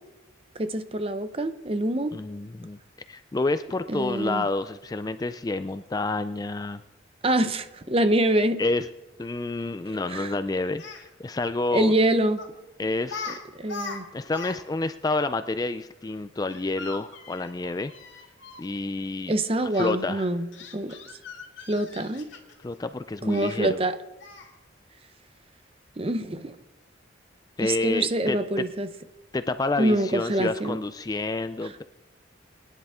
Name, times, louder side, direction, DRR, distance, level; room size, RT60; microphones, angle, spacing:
voice 1, 0.6-2.1 3.9-4.5 7.2-8.6 10.1-10.3 11.7-12.4 13.3-14.0 19.3-20.5 20.7-21.0 21.7-22.3 23.3-23.9 26.0-26.6 27.6-28.9 29.8-30.8, right 1 dB, 30° right, 10 dB, 0.7 m, -25 dB
voice 2, 2.1-2.8 3.1-6.8 8.6-8.9 9.2-11.9 12.8-13.4 14.1-17.9 18.6-19.3 19.7-20.3 22.6-23.8 27.6-28.6 29.3-31.8, left 2 dB, 20° left, 11 dB, 0.3 m, -29 dB
Speech, 10.8-11.0 12.4-12.6 13.1-13.4 13.6-14.6 14.8-14.9 16.5-18.7 19.7-19.9 20.5-22.7 23.3-23.6 24.2-24.6, left 4 dB, 75° left, 2.1 m, -40 dB
22.0 x 10.5 x 3.6 m, 1.0 s
head